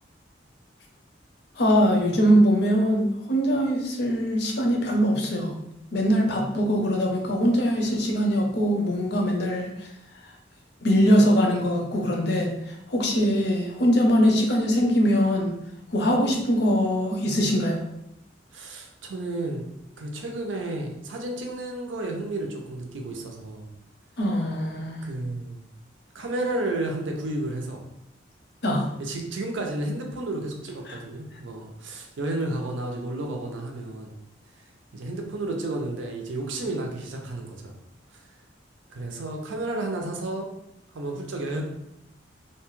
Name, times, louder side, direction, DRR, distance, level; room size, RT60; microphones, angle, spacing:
voice 1, 1.6-5.5 5.9-9.9 10.8-15.5 15.9-17.8 24.2-25.0 28.6-28.9 30.9-31.0, equal, 60° left, 1 dB, 0.6 m, -22 dB
voice 2, 18.5-19.7 20.0-23.7 25.0-25.6 26.1-27.8 29.0-34.1 34.9-37.8 38.9-40.5 40.9-41.6, right 2 dB, 80° right, 2 dB, 0.5 m, -32 dB
2.7 x 2.2 x 3.0 m, 0.80 s
head